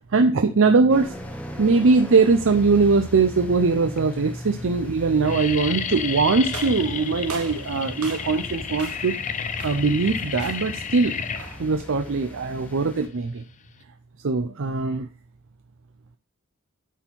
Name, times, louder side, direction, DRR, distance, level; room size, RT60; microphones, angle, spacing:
voice 1, 0.1-1.2 1.6-9.1 9.6-11.2 11.6-13.4 14.2-15.1, right 4 dB, 60° right, 7 dB, 0.6 m, -21 dB
sound 1, 0.9-13.1, equal, 5° left, 0.9 m, -39 dB
sound 2, 2.6-3.2 3.9-4.0 4.3-4.6 4.9-13.8, left 6 dB, 35° left, 0.5 m, -32 dB
sound 3, 6.5-8.5 8.8-9.2 9.6-10.0 10.4-10.8 11.3-11.7, right 6 dB, 80° right, 1.1 m, -40 dB
9.1 x 4.4 x 4.5 m, 0.38 s
head